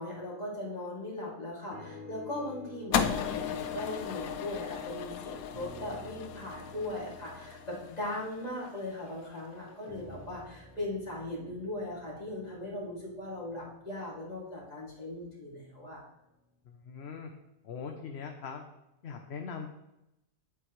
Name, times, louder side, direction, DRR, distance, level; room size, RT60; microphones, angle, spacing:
voice 1, 0.0-16.0, left 1 dB, 30° left, -5 dB, 2.7 m, -39 dB
sound 1, 1.7-5.1 5.5-9.2 9.8-14.0 14.7-14.8, left 1 dB, 55° right, 2.9 m, -52 dB
sound 2, 2.9-9.3, left 8 dB, 90° left, 1.1 m, -36 dB
voice 2, 16.6-17.3 17.6-18.6 19.0-19.7, left 6 dB, 55° left, 4 dB, 0.9 m, -41 dB
10.0 x 7.9 x 3.1 m, 0.89 s
omnidirectional pair, 1.5 m